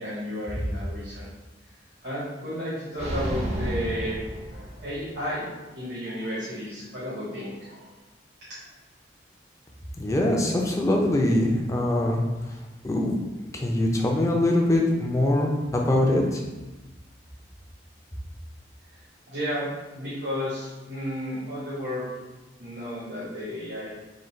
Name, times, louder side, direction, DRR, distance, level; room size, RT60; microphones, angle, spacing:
voice 1, 0.0-1.3 2.0-4.2 4.5-7.9 18.9-22.1 22.6-23.9, equal, 70° right, -10 dB, 1.2 m, -33 dB
sound 1, 3.0-5.2, right 1 dB, 35° right, 0.6 m, -31 dB
voice 2, 10.0-12.2 12.8-13.2 13.5-16.4, left 1 dB, 20° left, 0 dB, 0.5 m, -23 dB
3.8 x 2.4 x 4.3 m, 1.1 s
head